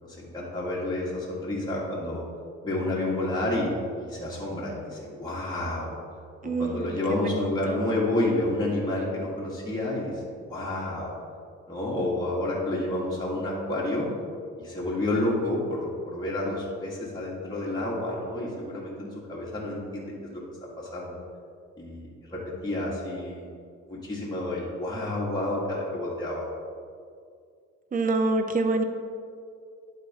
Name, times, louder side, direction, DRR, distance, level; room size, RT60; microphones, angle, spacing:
voice 1, 0.0-2.2 2.6-6.0 6.4-11.2 11.7-14.1 14.6-20.4 20.8-21.2 21.8-23.5 23.9-26.4, left 1 dB, 15° left, -7 dB, 1.9 m, -30 dB
voice 2, 6.4-7.8 27.9-28.8, right 2 dB, 25° right, 6 dB, 0.7 m, -27 dB
11.0 x 4.3 x 3.7 m, 2.3 s
cardioid pair, 90°, 30 cm